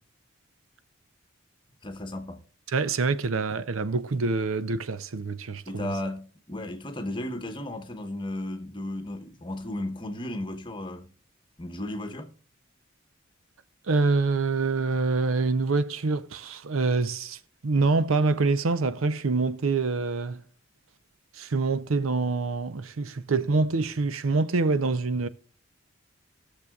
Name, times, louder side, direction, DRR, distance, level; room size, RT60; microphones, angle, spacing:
voice 1, 1.8-2.4 5.7-11.1 11.6-12.3, left 1 dB, 25° left, 1.1 m, -34 dB
voice 2, 2.7-5.9 13.9-20.4 21.4-25.3, right 3 dB, 85° right, 0.6 m, -26 dB
19.5 x 6.7 x 2.4 m
head